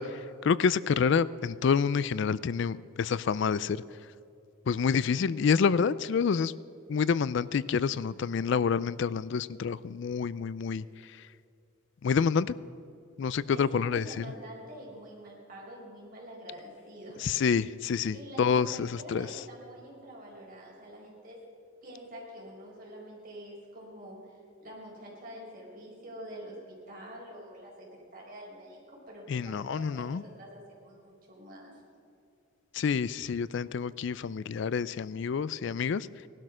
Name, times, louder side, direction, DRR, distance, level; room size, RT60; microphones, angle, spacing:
voice 1, 0.0-3.8 4.7-6.5 6.9-11.2 12.0-12.5 13.2-14.2 17.2-19.4 29.3-30.2 32.7-36.1, left 6 dB, 60° left, 19 dB, 0.4 m, -28 dB
voice 2, 13.5-17.2 18.1-21.4 21.8-31.8, equal, 40° right, -3 dB, 4.7 m, -46 dB
18.5 x 12.0 x 6.2 m, 2.5 s
head